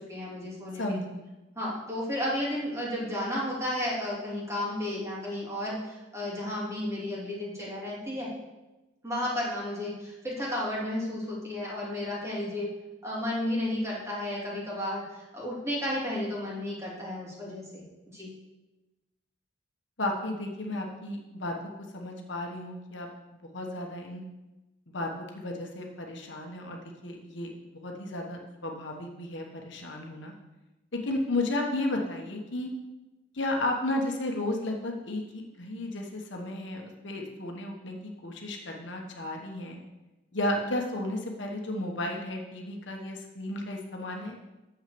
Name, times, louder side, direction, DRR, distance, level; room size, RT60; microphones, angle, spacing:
voice 1, 0.1-1.0 1.5-8.3 9.0-12.7 13.0-18.3, left 1 dB, 15° right, -5 dB, 2.9 m, -33 dB
voice 2, 0.7-1.2 20.0-23.1 23.5-24.2 24.9-30.3 30.9-32.7 33.3-39.8 40.3-44.3, left 1 dB, 65° left, 1 dB, 1.3 m, -33 dB
7.3 x 6.3 x 7.0 m, 1.0 s
head